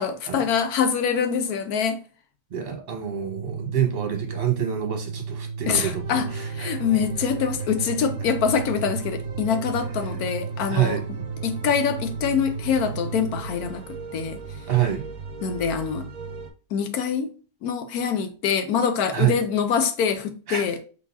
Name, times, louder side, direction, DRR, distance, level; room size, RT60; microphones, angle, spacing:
voice 1, 0.0-2.0 5.7-11.0 11.4-14.4 15.4-16.1 16.7-17.3 17.6-20.8, left 7 dB, 70° left, 1.0 m, -25 dB
voice 2, 2.5-6.8 10.7-11.3 14.7-15.0 19.1-19.4 20.5-20.6, right 10 dB, 35° right, 1.3 m, -26 dB
Organ, 3.2-13.5, right 5 dB, 80° right, 1.1 m, -34 dB
sound 1, 5.6-16.5, right 4 dB, 60° right, 1.1 m, -38 dB
4.2 x 3.9 x 2.8 m
omnidirectional pair, 1.8 m